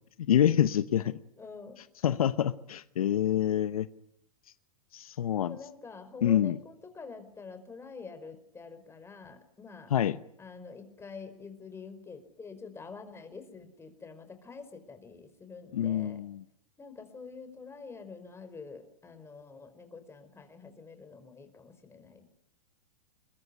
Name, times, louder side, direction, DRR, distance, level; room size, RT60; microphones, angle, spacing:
voice 1, 0.3-1.1 2.0-3.9 4.9-5.6 6.2-6.6 9.9-10.2 15.7-16.4, left 10 dB, 75° left, 0.9 m, -26 dB
voice 2, 1.4-1.8 5.4-9.9 10.4-16.2 16.8-22.3, left 4 dB, 15° left, 4.9 m, -47 dB
22.5 x 22.0 x 9.8 m
hypercardioid pair, 110°, 18 cm